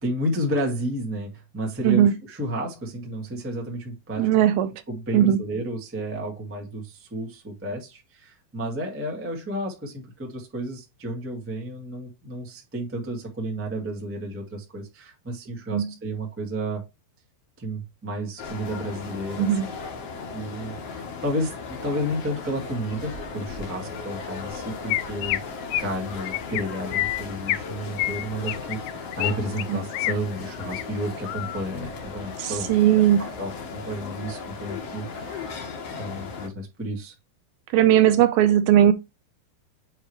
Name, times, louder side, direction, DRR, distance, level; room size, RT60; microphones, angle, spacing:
voice 1, 0.0-4.3 4.9-16.8 17.6-19.5 20.3-25.4 25.8-28.8 29.1-35.7 35.9-37.1, equal, 15° right, 0.4 m, -32 dB
voice 2, 4.2-4.7 5.1-5.4 15.7-15.9 19.4-19.7 29.7-29.8 32.4-33.3 37.7-38.9, right 11 dB, 80° right, 2.2 m, -18 dB
sound 1, 18.4-36.5, left 5 dB, 60° left, 1.8 m, -36 dB
Chirp tweet, 24.5-24.6 24.9-25.4 25.7-25.9 26.3-26.6 26.9-27.6 28.0-29.3 29.6-30.1 30.6-30.8 31.3-31.6, left 15 dB, 85° left, 2.0 m, -27 dB
7.6 x 3.2 x 4.7 m
omnidirectional pair, 4.5 m